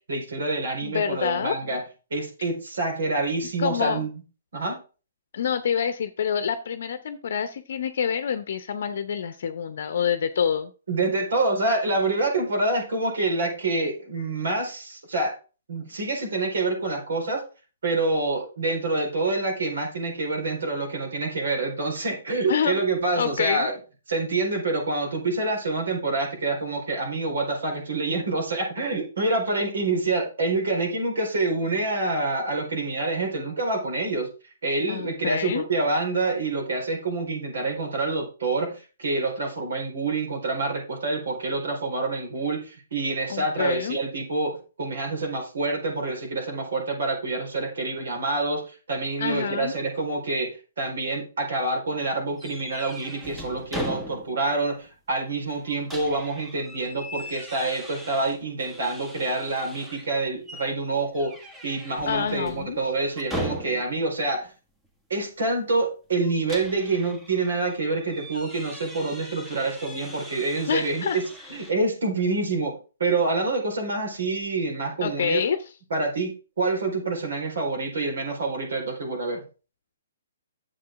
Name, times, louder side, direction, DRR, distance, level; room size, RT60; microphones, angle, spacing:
voice 1, 0.1-1.8 2.1-4.2 4.5-4.8 10.9-15.3 15.7-17.4 17.8-23.7 24.1-34.3 34.6-61.3 61.6-64.5 65.1-71.2 71.5-75.4 75.9-76.3 76.6-79.4, right 3 dB, 70° right, 2 dB, 4.3 m, -27 dB
voice 2, 0.8-1.6 3.6-4.1 5.3-10.7 22.5-22.8 23.1-23.7 34.9-35.6 43.3-44.0 49.2-49.7 62.1-62.8 70.7-71.2 75.0-75.6, left 7 dB, 60° left, 10 dB, 0.7 m, -27 dB
sound 1, 52.4-54.5 54.9-55.0 55.5-60.1 60.5-60.8 61.1-64.1 66.1-71.7, equal, 10° right, 1.6 m, -39 dB
9.5 x 7.4 x 3.6 m, 0.34 s
hypercardioid pair, 135°, 0 cm